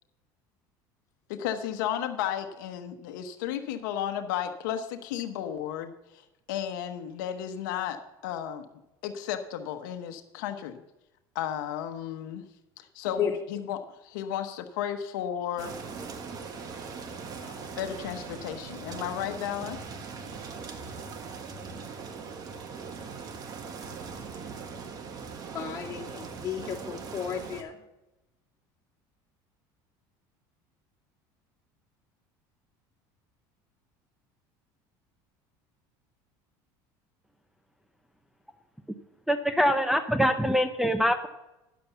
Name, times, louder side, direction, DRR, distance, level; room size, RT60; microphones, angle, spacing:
voice 1, 1.3-8.7 9.0-10.8 11.3-12.4 12.8-15.7 17.4-19.8, left 10 dB, 90° left, 1.0 m, -34 dB
sound 1, 15.6-27.6, right 5 dB, 40° right, 1.4 m, -40 dB
voice 2, 25.5-27.8, left 8 dB, 35° left, 2.7 m, -33 dB
voice 3, 39.3-41.3, equal, ahead, 0.6 m, -24 dB
10.5 x 7.0 x 6.9 m
supercardioid pair, 115°, 10 cm